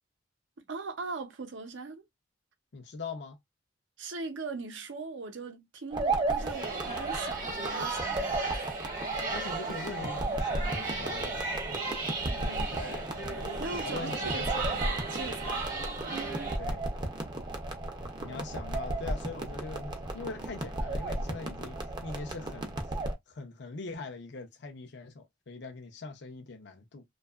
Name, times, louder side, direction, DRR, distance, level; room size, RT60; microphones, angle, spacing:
voice 1, 0.6-2.1 4.0-8.5 12.3-12.8 13.3-16.5 18.2-18.4, right 3 dB, 75° right, 0.6 m, -41 dB
voice 2, 2.7-3.4 8.9-11.5 12.6-13.1 13.8-14.6 16.6-16.9 18.2-23.0 23.3-27.0, left 3 dB, 65° left, 0.5 m, -42 dB
sound 1, 5.9-23.1, right 2 dB, 25° right, 0.5 m, -34 dB
sound 2, 6.4-16.6, right 3 dB, 45° right, 0.9 m, -36 dB
2.7 x 2.2 x 2.3 m
head